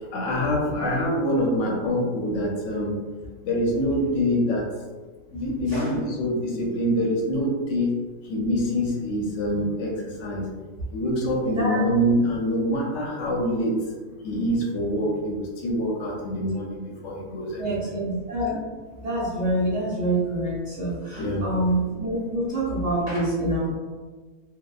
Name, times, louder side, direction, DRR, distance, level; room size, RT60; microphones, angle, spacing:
voice 1, 0.1-3.0 3.4-4.7 5.3-7.9 8.3-10.5 10.9-13.8 14.2-17.9 21.2-21.5, equal, 65° left, -1 dB, 0.8 m, -25 dB
voice 2, 11.5-11.8 17.6-18.6 19.0-23.7, right 1 dB, 60° right, -8 dB, 0.9 m, -26 dB
2.8 x 2.1 x 2.3 m, 1.3 s
omnidirectional pair, 1.6 m